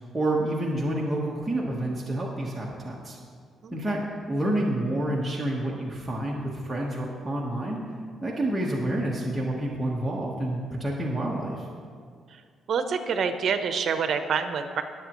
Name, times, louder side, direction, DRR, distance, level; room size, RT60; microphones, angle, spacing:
voice 1, 0.1-3.2 3.7-4.0 4.3-7.8 8.2-11.7, right 1 dB, 5° right, -4 dB, 1.3 m, -28 dB
voice 2, 12.7-14.8, right 6 dB, 55° right, 8 dB, 0.8 m, -26 dB
21.0 x 7.5 x 3.1 m, 2.1 s
cardioid pair, 130°, 0 cm